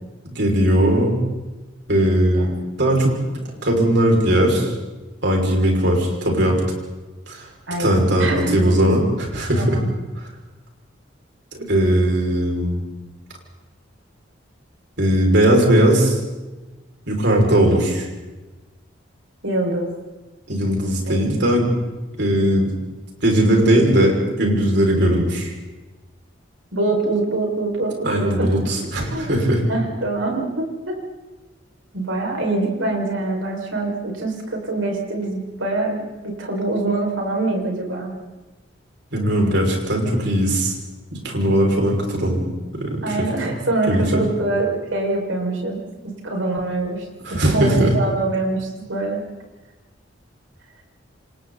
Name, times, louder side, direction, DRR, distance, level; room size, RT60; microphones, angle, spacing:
voice 1, 0.4-1.2 1.9-2.5 2.8-3.1 3.6-4.7 5.2-6.6 7.3-7.4 7.8-9.8 11.7-12.8 15.0-16.2 17.1-18.1 20.5-21.7 22.2-22.7 23.2-25.5 28.0-29.6 39.1-40.7 41.2-42.5 42.8-43.2 43.9-44.2 47.2-47.9, right 1 dB, 60° right, 0 dB, 6.1 m, -18 dB
voice 2, 7.7-8.6 9.6-9.8 19.4-19.9 21.0-21.2 23.7-23.8 26.7-28.7 29.1-29.4 29.7-31.0 31.9-36.1 36.4-38.1 43.0-47.0 47.3-49.2, right 2 dB, 85° right, 1 dB, 5.9 m, -24 dB
29.0 x 26.5 x 4.2 m, 1.1 s
head